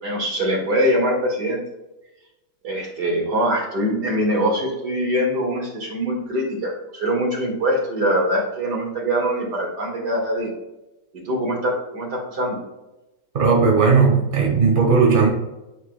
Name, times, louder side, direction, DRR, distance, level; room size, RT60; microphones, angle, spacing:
voice 1, 0.0-1.6 2.6-10.5 11.1-12.6, equal, 50° right, -2 dB, 2.3 m, -23 dB
voice 2, 13.3-15.3, right 5 dB, 30° right, -1 dB, 1.2 m, -16 dB
11.5 x 4.2 x 2.2 m, 1.0 s
omnidirectional pair, 2.3 m